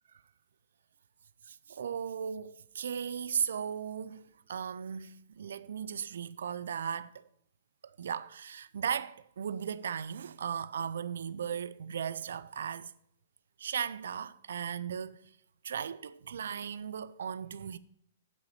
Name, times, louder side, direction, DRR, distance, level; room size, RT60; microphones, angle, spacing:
voice 1, 1.5-4.2 4.5-7.2 7.8-12.9 13.6-15.3 15.6-17.8, right 7 dB, 70° right, 0.4 m, -37 dB
8.4 x 6.3 x 5.6 m
hypercardioid pair, 125°, 0 cm